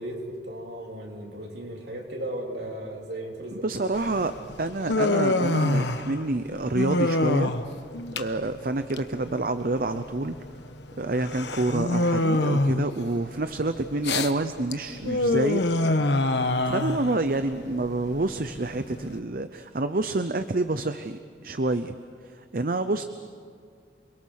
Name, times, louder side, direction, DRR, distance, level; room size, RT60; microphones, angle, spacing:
voice 1, 0.0-3.7, right 1 dB, 65° right, 0 dB, 3.8 m, -36 dB
voice 2, 3.5-7.5 8.1-10.4 11.0-16.1 16.7-21.9 22.2-23.0, right 2 dB, 50° right, 10 dB, 0.7 m, -28 dB
Human voice, 3.9-19.2, left 2 dB, 75° left, 1.2 m, -27 dB
29.0 x 22.5 x 6.5 m, 2.2 s
head